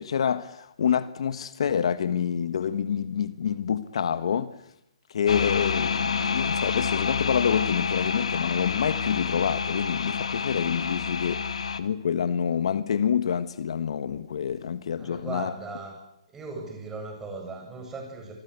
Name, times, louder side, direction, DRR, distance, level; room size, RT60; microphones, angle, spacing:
voice 1, 0.0-4.5 5.1-11.4 11.8-15.5, left 8 dB, 60° left, 1.5 m, -27 dB
sound 1, 5.3-11.8, left 5 dB, 75° left, 2.2 m, -28 dB
voice 2, 15.0-15.9 16.3-18.3, right 3 dB, 10° right, 8.0 m, -38 dB
26.5 x 23.0 x 8.3 m
hypercardioid pair, 160°, 3 cm